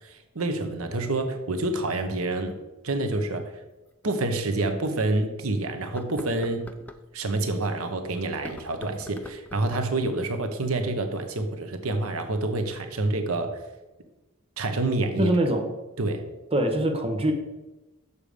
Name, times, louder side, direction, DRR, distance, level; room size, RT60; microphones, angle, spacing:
voice 1, 0.0-2.6 2.8-3.5 4.0-6.7 7.1-13.6 14.6-15.3 16.0-16.2, right 2 dB, 75° right, 6 dB, 1.0 m, -27 dB
sound 1, 3.9-4.0 4.5-4.6 5.8-7.0 8.3-10.0, left 1 dB, 5° left, 0.5 m, -43 dB
voice 2, 15.2-15.7 16.5-17.3, right 1 dB, 25° right, 3 dB, 1.0 m, -23 dB
7.0 x 6.6 x 5.0 m, 1.0 s
head